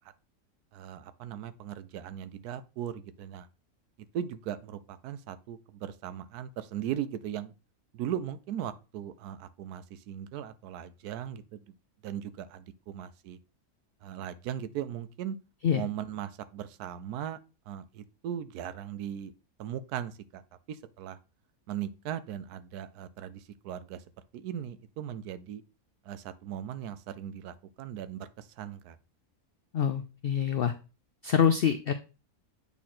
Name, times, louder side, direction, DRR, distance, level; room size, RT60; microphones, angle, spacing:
voice 1, 0.7-3.5 4.1-7.5 7.9-11.6 12.0-13.4 14.0-15.4 15.7-17.4 17.7-19.3 19.6-20.4 20.7-21.2 21.7-24.0 24.3-25.6 26.0-29.0, right 10 dB, 85° right, 1.1 m, -38 dB
voice 2, 29.7-30.7 31.2-31.9, left 8 dB, 85° left, 0.5 m, -25 dB
8.4 x 3.0 x 4.2 m
omnidirectional pair, 1.6 m